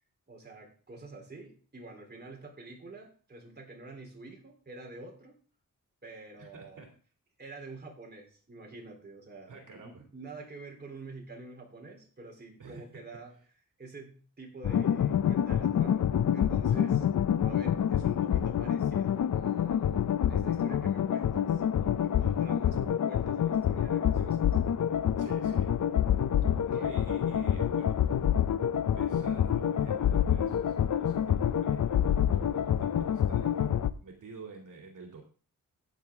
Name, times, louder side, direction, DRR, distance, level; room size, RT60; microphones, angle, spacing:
voice 1, 0.3-5.4 6.0-6.8 7.4-13.3 13.8-17.0 17.4-24.6 26.5-27.0, right 3 dB, 30° right, 1 dB, 3.5 m, -48 dB
voice 2, 6.4-6.9 9.5-10.0 12.6-12.9 16.7-16.9 22.2-22.5 25.2-25.7 26.4-28.2 28.8-33.7 34.0-35.2, right 4 dB, 70° right, 1 dB, 2.7 m, -48 dB
sound 1, 14.6-33.9, left 9 dB, 60° left, 0.6 m, -27 dB
14.0 x 9.1 x 3.6 m, 0.40 s
wide cardioid pair, 145°, 33 cm